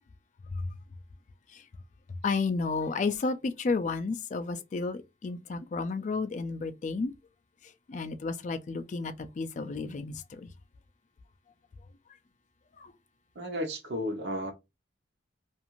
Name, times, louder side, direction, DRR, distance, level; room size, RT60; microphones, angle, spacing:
voice 1, 2.2-7.1 7.9-10.5 12.8-12.9, left 4 dB, 40° left, 0.3 m, -32 dB
voice 2, 13.3-14.5, equal, 60° right, 0.8 m, -33 dB
2.5 x 2.4 x 2.9 m
head